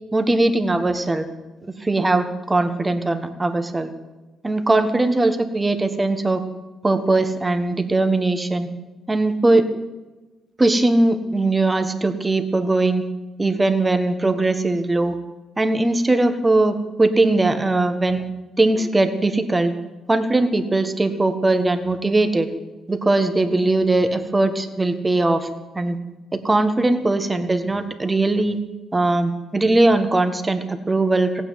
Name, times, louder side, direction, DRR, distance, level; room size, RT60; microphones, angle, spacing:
voice 1, 0.1-1.3 1.8-3.9 4.4-6.4 6.8-8.7 9.1-9.7 10.6-13.0 13.4-15.1 15.6-18.2 18.6-19.7 20.1-22.5 22.9-25.5 25.7-26.0 26.3-28.6 28.9-31.4, right 2 dB, 20° right, 8 dB, 1.6 m, -20 dB
16.0 x 9.1 x 9.2 m, 1.2 s
cardioid pair, 90°, 0 cm